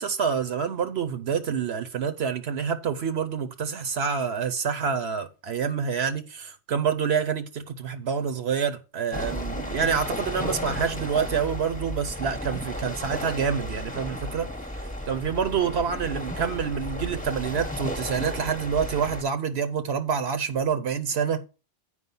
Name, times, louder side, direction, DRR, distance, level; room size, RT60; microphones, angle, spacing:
voice 1, 0.0-14.5 15.1-21.4, right 6 dB, 70° right, 1.0 m, -27 dB
sound 1, 9.1-19.2, left 1 dB, 10° left, 0.9 m, -34 dB
8.2 x 5.0 x 5.4 m
omnidirectional pair, 1.1 m